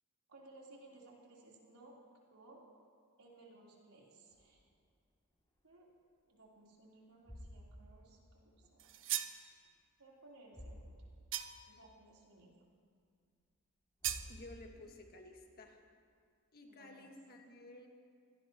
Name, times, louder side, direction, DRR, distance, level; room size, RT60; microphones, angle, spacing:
voice 1, 0.3-1.9 2.3-2.6 3.2-4.6 5.6-5.9 6.2-9.0 10.0-10.9 11.7-12.6 16.7-17.1, right 2 dB, 90° right, -4 dB, 3.8 m, -60 dB
sound 1, 4.3-5.9 6.3-6.6 7.0-8.9 9.2-9.9 10.1-10.2 10.5-11.5 11.8-11.9 12.5-12.6 13.6-13.7 14.0-15.0, equal, 20° left, 2.6 m, -55 dB
sound 2, 8.8-9.4 11.3-11.8 14.0-14.3, right 11 dB, 60° right, 0.7 m, -38 dB
voice 2, 14.3-15.8 16.5-17.9, left 2 dB, 45° left, 2 dB, 1.7 m, -54 dB
25.5 x 17.5 x 3.0 m, 2.2 s
head